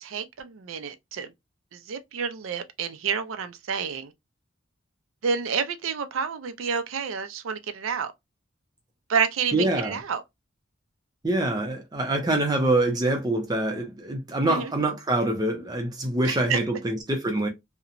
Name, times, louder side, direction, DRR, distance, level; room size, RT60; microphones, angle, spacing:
voice 1, 0.0-1.3 1.7-4.1 5.2-8.1 9.1-10.2 14.5-14.7 16.2-16.6, right 6 dB, 90° right, 0.4 m, -29 dB
voice 2, 9.5-9.9 11.2-17.5, right 2 dB, 20° right, 0.5 m, -25 dB
2.8 x 2.1 x 2.4 m
head